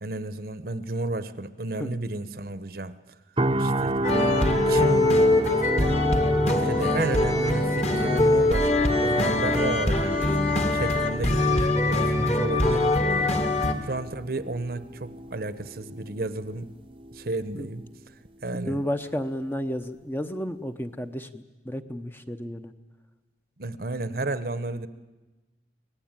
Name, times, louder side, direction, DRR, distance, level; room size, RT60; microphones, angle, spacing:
voice 1, 0.0-3.0 3.6-3.9 4.5-5.1 5.4-5.6 5.9-6.1 6.4-8.7 9.0-10.2 10.7-13.0 13.8-16.7 17.1-17.8 18.4-18.8 23.6-24.9, right 2 dB, 55° right, 14 dB, 0.9 m, -32 dB
sound 1, 3.4-17.4 17.7-17.9, right 1 dB, 30° right, 0.8 m, -32 dB
sound 2, 4.0-13.7, left 2 dB, 35° left, 2.0 m, -23 dB
voice 2, 8.0-8.4 17.6-17.7 18.6-22.7, equal, 10° left, 8 dB, 0.8 m, -32 dB
25.0 x 19.0 x 8.9 m, 1.2 s
head